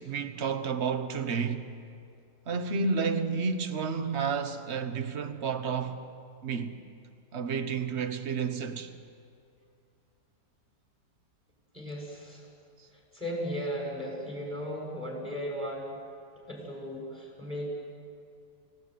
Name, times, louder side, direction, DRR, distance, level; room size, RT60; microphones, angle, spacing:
voice 1, 0.0-1.7 2.5-6.1 6.4-6.8 7.3-8.9, right 5 dB, 40° right, 1.4 m, -31 dB
voice 2, 11.7-12.5 12.9-16.0 16.5-17.7, equal, 5° right, 7.2 m, -36 dB
29.5 x 17.0 x 9.5 m
omnidirectional pair, 1.9 m